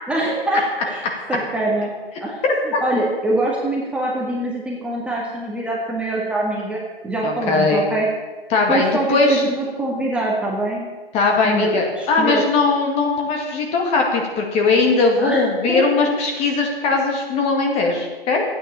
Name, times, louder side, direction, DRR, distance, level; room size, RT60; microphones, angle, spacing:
voice 1, 0.1-1.0 1.3-1.9 2.2-8.1 8.7-10.9 11.4-12.4 15.2-16.0, right 2 dB, 5° right, -4 dB, 1.8 m, -24 dB
voice 2, 2.4-2.8 7.2-7.8 8.5-9.4 11.1-18.4, left 3 dB, 20° left, 1 dB, 2.0 m, -19 dB
14.5 x 9.2 x 7.0 m, 1.3 s
hypercardioid pair, 140°, 30 cm